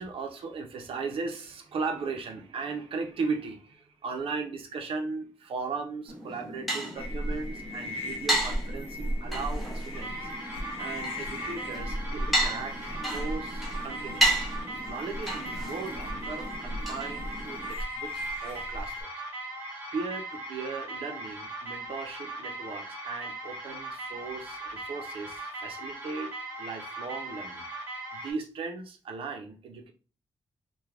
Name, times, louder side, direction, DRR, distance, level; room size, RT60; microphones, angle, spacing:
voice 1, 0.0-10.3 10.8-12.8 13.1-14.5 14.8-19.1 19.9-27.6 28.1-29.9, right 4 dB, 70° right, 0.5 m, -37 dB
sound 1, 6.1-17.7, right 1 dB, ahead, 0.7 m, -33 dB
sound 2, 7.0-19.0, equal, 75° left, 0.6 m, -37 dB
sound 3, 9.9-28.3, right 2 dB, 20° right, 1.1 m, -39 dB
3.1 x 2.2 x 2.4 m
wide cardioid pair, 175°, 10 cm